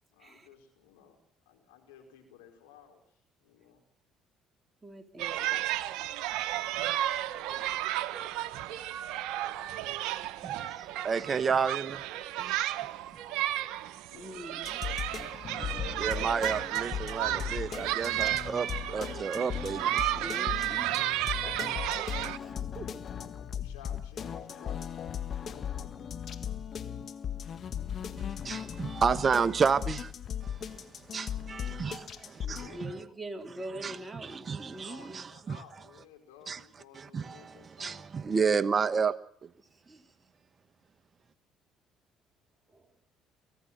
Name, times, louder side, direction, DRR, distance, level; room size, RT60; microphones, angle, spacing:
voice 1, 0.1-1.2 1.5-3.8 6.3-6.8 7.1-7.9 14.1-14.5 20.2-20.7 21.4-22.0 23.4-24.9 25.4-25.7 32.3-32.9 34.8-38.1, left 8 dB, 90° left, 5.2 m, -55 dB
voice 2, 4.8-5.7 14.1-14.8 20.2-21.0 22.4-22.9 32.4-35.3 39.6-40.2 42.7-42.9, right 1 dB, 20° right, 3.5 m, -44 dB
sound 1, 5.2-22.4, right 14 dB, 75° right, 1.0 m, -33 dB
voice 3, 10.4-12.0 12.5-12.6 16.0-20.2 28.2-30.1 30.4-32.9 33.8-33.9 34.2-35.6 36.5-36.6 37.0-37.5 37.8-39.1 39.4-39.5, right 6 dB, 40° right, 1.1 m, -31 dB
sound 2, 14.6-32.7, left 8 dB, 50° left, 1.6 m, -38 dB
24.5 x 16.5 x 7.7 m
hypercardioid pair, 65°, 0 cm